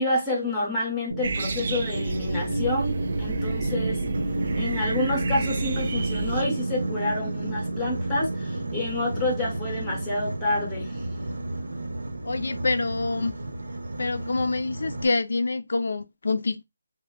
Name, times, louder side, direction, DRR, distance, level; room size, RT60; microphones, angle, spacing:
voice 1, 0.0-4.0 4.5-11.0, left 2 dB, 5° left, 0.7 m, -28 dB
sound 1, 1.1-13.2, right 2 dB, 60° right, 0.8 m, -31 dB
sound 2, 1.2-6.4, right 4 dB, 40° right, 0.3 m, -33 dB
Boat Water vehicle, 4.1-15.1, right 2 dB, 85° right, 1.1 m, -34 dB
voice 2, 12.2-13.4 14.0-16.6, left 3 dB, 65° left, 0.4 m, -26 dB
3.1 x 2.1 x 3.7 m
hypercardioid pair, 170°, 0 cm